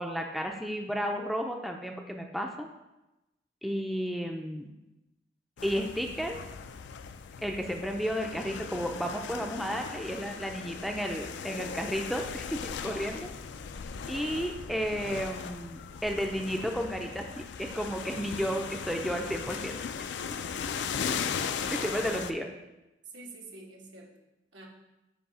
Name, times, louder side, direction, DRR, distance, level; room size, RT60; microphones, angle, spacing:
voice 1, 0.0-2.7 3.6-4.7 5.6-6.4 7.4-13.3 14.1-19.8 21.7-22.5, equal, ahead, 2 dB, 0.4 m, -33 dB
sound 1, 5.6-22.3, left 6 dB, 75° left, 0.4 m, -38 dB
voice 2, 21.0-21.9 23.1-24.1 24.5-24.7, right 2 dB, 85° right, -1 dB, 1.2 m, -48 dB
7.0 x 2.7 x 5.5 m, 0.98 s
head